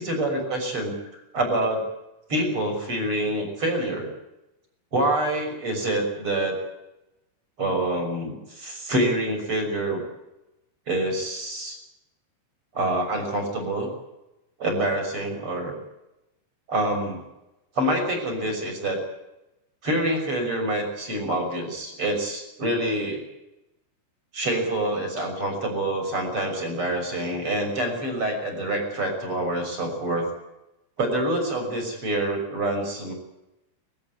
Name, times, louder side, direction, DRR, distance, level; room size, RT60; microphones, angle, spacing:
voice 1, 0.1-0.9 1.3-1.7 2.3-4.1 4.9-6.6 7.6-10.0 10.9-11.8 12.7-13.9 14.6-15.8 16.7-17.2 17.7-19.0 19.8-23.2 24.3-30.3 31.0-33.1, right 1 dB, 25° right, 3 dB, 6.7 m, -26 dB
23.5 x 15.5 x 9.9 m, 0.91 s
omnidirectional pair, 5.9 m